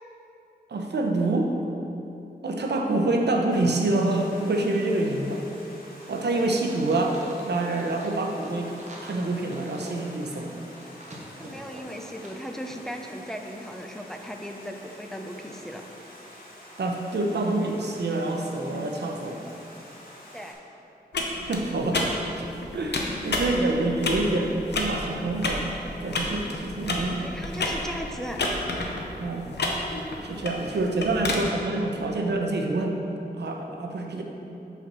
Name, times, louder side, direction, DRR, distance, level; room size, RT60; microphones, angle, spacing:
voice 1, 0.7-1.5 2.4-5.4 6.1-8.7 9.0-10.5 16.8-19.4 21.2-22.0 22.4-22.5 22.7-25.7 26.0-27.2 29.1-29.6 30.2-33.0 33.4-34.2, right 2 dB, 85° right, 2 dB, 0.7 m, -26 dB
Stream, 3.5-20.5, equal, 60° left, 1.5 m, -48 dB
sound 1, 6.5-12.4 12.7-12.8, right 1 dB, 45° right, 1.1 m, -44 dB
voice 2, 11.4-15.8 20.3-20.6 26.8-28.4, equal, 5° left, 3 dB, 0.5 m, -37 dB
sound 2, 21.1-31.4, left 2 dB, 90° left, 0.8 m, -31 dB
5.7 x 4.3 x 6.0 m, 3.0 s
wide cardioid pair, 90°, 17 cm